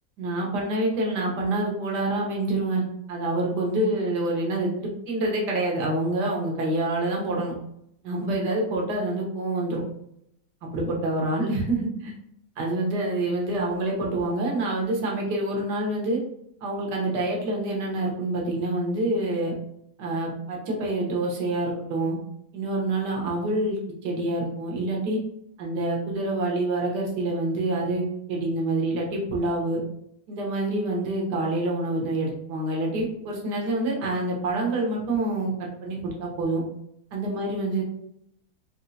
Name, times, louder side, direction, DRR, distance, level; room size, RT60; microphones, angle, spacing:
voice 1, 0.2-2.8 3.1-7.5 8.0-9.8 10.6-12.1 12.6-16.2 16.6-19.5 20.0-22.2 22.5-25.2 25.6-29.8 30.3-36.6 37.1-37.8, right 2 dB, 80° right, -1 dB, 1.7 m, -27 dB
4.4 x 3.0 x 2.7 m, 0.76 s
omnidirectional pair, 1.8 m